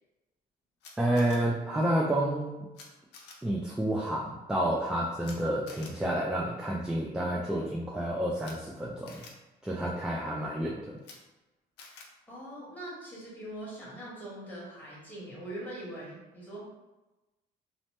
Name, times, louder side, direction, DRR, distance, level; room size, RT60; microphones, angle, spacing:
Camera, 0.8-1.4 2.7-2.8 3.1-3.3 5.2-5.4 5.7-5.9 8.4-8.5 9.1-9.3 11.0-11.2 11.8-12.1, left 4 dB, 80° left, 0.6 m, -49 dB
voice 1, 1.0-2.7 3.4-9.3 9.6-11.0, right 1 dB, 5° right, -3 dB, 0.3 m, -30 dB
voice 2, 12.3-16.6, right 1 dB, 10° left, -7 dB, 1.3 m, -42 dB
2.8 x 2.0 x 3.1 m, 1.1 s
cardioid pair, 110°, 17 cm